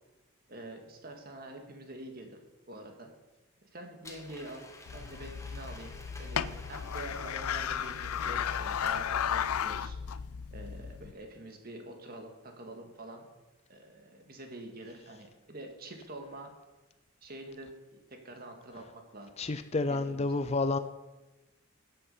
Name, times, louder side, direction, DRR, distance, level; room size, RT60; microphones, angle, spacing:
voice 1, 0.5-2.4 2.7-3.1 3.6-4.7 4.9-10.2 10.5-13.3 13.7-16.5 17.2-17.7 18.1-18.9 19.1-19.3 19.9-20.4, right 1 dB, 45° right, 3 dB, 1.8 m, -46 dB
Domestic sounds home sounds, 4.0-9.7, left 2 dB, 15° left, 1.1 m, -51 dB
sound 1, 4.9-11.1, left 8 dB, 85° left, 0.5 m, -34 dB
voice 2, 19.4-20.8, left 3 dB, 30° left, 11 dB, 0.4 m, -29 dB
13.5 x 8.3 x 5.6 m, 1.1 s
head